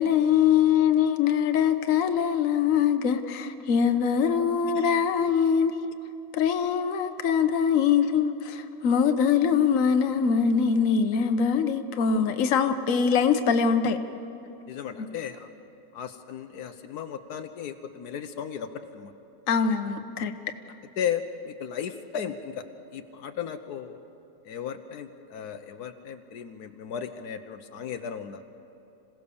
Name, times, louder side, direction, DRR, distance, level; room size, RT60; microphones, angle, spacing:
voice 1, 0.0-5.9 6.3-14.0 19.5-20.3, left 7 dB, 60° left, 8 dB, 1.2 m, -23 dB
voice 2, 14.7-15.5 15.9-19.1 20.2-20.3 21.0-22.7 22.9-24.0 24.4-28.4, left 8 dB, 80° left, 8 dB, 1.3 m, -35 dB
26.5 x 17.0 x 7.0 m, 2.8 s
omnidirectional pair, 1.7 m